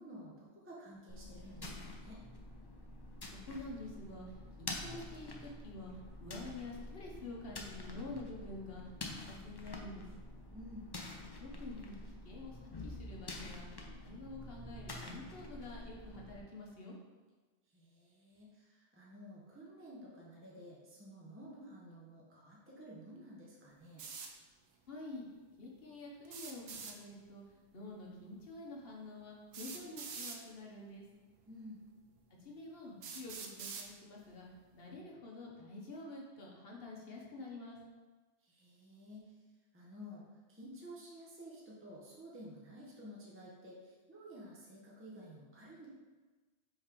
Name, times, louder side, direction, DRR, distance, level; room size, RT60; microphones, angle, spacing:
voice 1, 0.0-2.2 10.5-10.9 17.7-24.1 31.5-31.8 38.4-39.3 39.7-40.2 40.5-45.9, equal, 10° right, -5 dB, 0.9 m, -52 dB
sound 1, 1.1-16.4, left 2 dB, 30° left, 0.4 m, -48 dB
voice 2, 3.5-4.2 4.6-5.9 6.2-8.8 9.3-10.1 11.4-11.9 12.2-13.7 14.0-16.9 24.9-25.2 25.6-27.4 27.7-31.0 32.3-34.5 34.7-37.8, left 2 dB, 55° left, -2 dB, 1.2 m, -48 dB
sound 2, 24.0-24.3 26.2-27.0 28.4-28.5 29.5-30.4 31.4-31.5 32.2-32.3 33.0-33.9, right 5 dB, 65° right, 0.8 m, -45 dB
5.2 x 3.6 x 5.1 m, 1.3 s
omnidirectional pair, 1.2 m